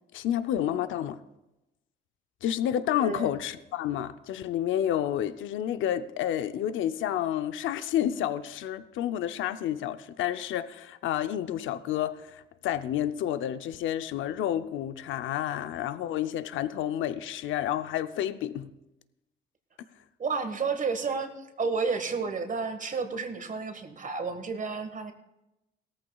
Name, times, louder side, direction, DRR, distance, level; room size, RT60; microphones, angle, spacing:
voice 1, 0.1-1.2 2.4-18.7, left 11 dB, 80° left, 12 dB, 0.6 m, -30 dB
voice 2, 20.2-25.1, right 4 dB, 40° right, 8 dB, 1.4 m, -31 dB
18.0 x 14.0 x 2.4 m, 0.96 s
cardioid pair, 90°, 20 cm